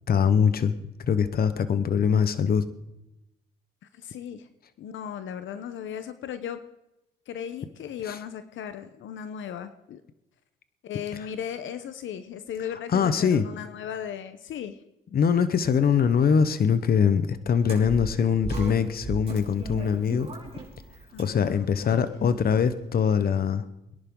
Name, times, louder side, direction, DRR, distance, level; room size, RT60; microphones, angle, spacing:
voice 1, 0.1-0.7 1.1-2.7 8.1-8.2 12.9-13.4 15.1-20.3 21.2-23.6, left 7 dB, 50° left, 12 dB, 1.1 m, -23 dB
voice 2, 3.9-4.5 4.8-6.6 7.3-10.0 10.8-14.8 21.1-22.0, left 9 dB, 75° left, 11 dB, 1.0 m, -36 dB
sound 1, 17.6-22.8, right 2 dB, 30° right, 5.0 m, -38 dB
23.0 x 11.0 x 3.9 m, 0.91 s
cardioid pair, 90°, 20 cm